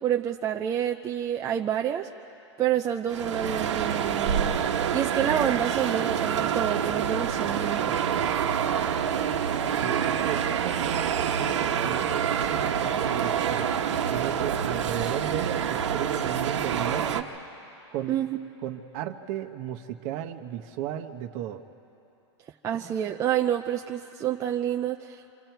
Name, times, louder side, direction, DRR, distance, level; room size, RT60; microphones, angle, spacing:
voice 1, 0.0-2.1 2.6-4.6 4.9-8.0 18.1-18.3 22.6-25.3, right 10 dB, 20° right, 3 dB, 0.5 m, -28 dB
sound 1, 3.1-17.2, right 8 dB, 80° right, 1.2 m, -27 dB
voice 2, 9.8-13.7 14.1-17.3 17.9-18.2 18.6-21.6, right 11 dB, 40° right, 7 dB, 1.1 m, -35 dB
28.0 x 25.0 x 4.6 m, 2.8 s
hypercardioid pair, 140°, 15 cm